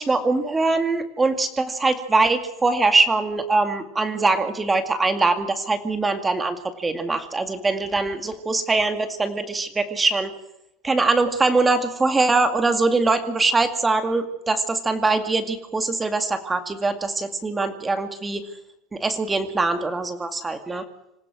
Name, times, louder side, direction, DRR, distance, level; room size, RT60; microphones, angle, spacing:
voice 1, 0.0-10.3 10.8-18.4 18.9-20.8, right 3 dB, 10° right, 8 dB, 2.2 m, -22 dB
26.5 x 15.5 x 6.3 m, 0.87 s
supercardioid pair, 155°, 0 cm